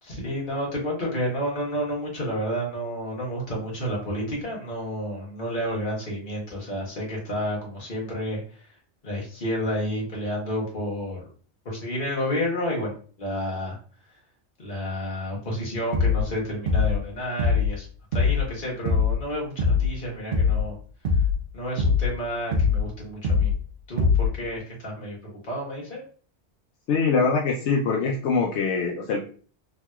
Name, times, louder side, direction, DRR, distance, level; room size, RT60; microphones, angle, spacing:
voice 1, 0.0-8.7 9.0-11.3 11.6-13.8 14.6-17.9 18.1-20.8 21.5-23.5 23.9-26.0, equal, 45° left, -4 dB, 1.3 m, -30 dB
sound 1, 15.9-16.3 16.7-17.0 17.4-17.8 18.1-18.5 18.9-19.2 19.6-20.0 20.3-20.7 21.0-21.4 21.8-22.2 22.5-22.9 23.2-23.6 24.0-24.4, left 5 dB, 65° right, 0.8 m, -22 dB
voice 2, 26.9-29.2, left 4 dB, 80° left, -1 dB, 0.9 m, -23 dB
3.2 x 2.8 x 2.3 m, 0.42 s
omnidirectional pair, 1.2 m